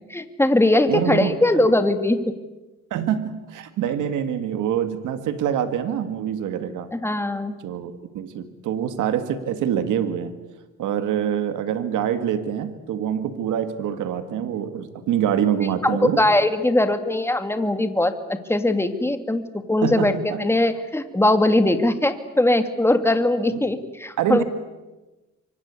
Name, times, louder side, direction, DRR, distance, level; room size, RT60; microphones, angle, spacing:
voice 1, 0.1-2.3 6.9-7.6 15.8-19.4 19.7-24.4, left 1 dB, 10° left, 8 dB, 2.5 m, -20 dB
voice 2, 0.9-1.4 2.9-6.9 7.6-10.4 10.8-16.2 19.8-20.4 23.5-23.6 24.2-24.4, right 9 dB, 85° right, 10 dB, 2.1 m, -25 dB
28.0 x 24.5 x 8.4 m, 1.1 s
cardioid pair, 90°, 30 cm